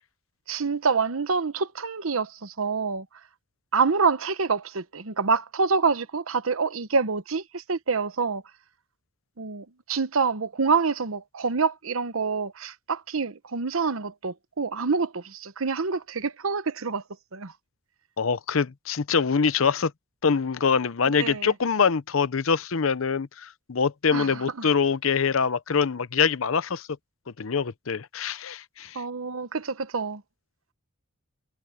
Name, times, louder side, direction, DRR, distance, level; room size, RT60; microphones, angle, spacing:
voice 1, 0.5-3.1 3.7-8.4 9.4-17.0 17.3-17.5 21.0-21.5 24.1-24.7 28.9-30.2, right 5 dB, 90° right, 0.9 m, -27 dB
voice 2, 18.2-19.9 20.2-26.9 27.4-29.0, left 5 dB, 80° left, 0.7 m, -24 dB
head